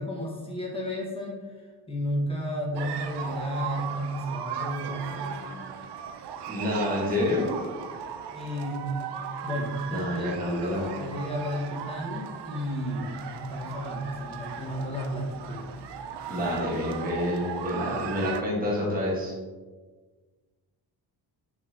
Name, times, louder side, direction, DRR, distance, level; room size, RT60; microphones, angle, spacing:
voice 1, 0.0-5.8 8.3-8.9 9.4-15.7, equal, 15° left, -3 dB, 1.5 m, -33 dB
sound 1, 2.7-18.4, right 7 dB, 85° right, 0.6 m, -37 dB
voice 2, 6.5-7.5 9.9-10.9 16.3-19.3, left 1 dB, 20° right, -4 dB, 1.5 m, -28 dB
6.0 x 5.7 x 2.8 m, 1.4 s
wide cardioid pair, 150°, 40 cm